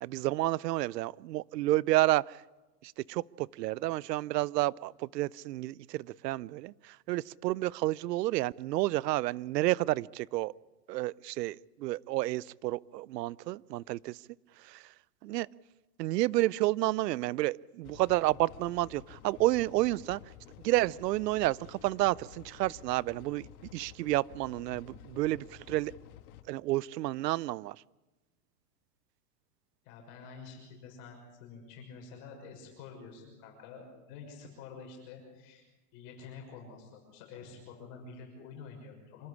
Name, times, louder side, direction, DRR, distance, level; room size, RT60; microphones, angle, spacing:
voice 1, 0.0-2.4 2.8-10.5 10.9-14.2 14.6-14.8 15.2-15.5 16.0-20.2 20.6-23.5 23.7-25.9 26.5-27.8, right 17 dB, 80° right, 24 dB, 0.6 m, -30 dB
sound 1, 17.8-26.4, left 11 dB, 65° left, 1.9 m, -52 dB
voice 2, 29.8-35.6 35.9-39.3, left 5 dB, 45° left, 1 dB, 6.2 m, -48 dB
26.5 x 13.0 x 9.8 m, 1.2 s
supercardioid pair, 155°, 48 cm